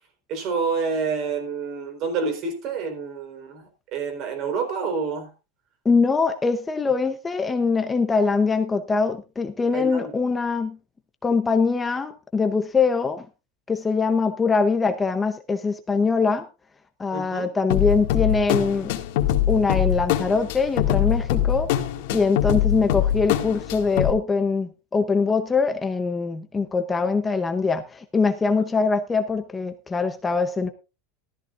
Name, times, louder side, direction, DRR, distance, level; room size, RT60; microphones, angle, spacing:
voice 1, 0.3-3.6 3.9-5.3 9.7-10.1 17.1-17.5, right 5 dB, 40° right, 4.1 m, -28 dB
voice 2, 5.8-10.8 11.2-13.3 13.7-16.5 17.0-18.9 19.5-21.7 22.1-30.7, left 4 dB, 10° left, 0.7 m, -23 dB
sound 1, 17.7-24.1, left 11 dB, 65° left, 2.0 m, -23 dB
15.0 x 13.5 x 2.5 m
supercardioid pair, 170°, 0 cm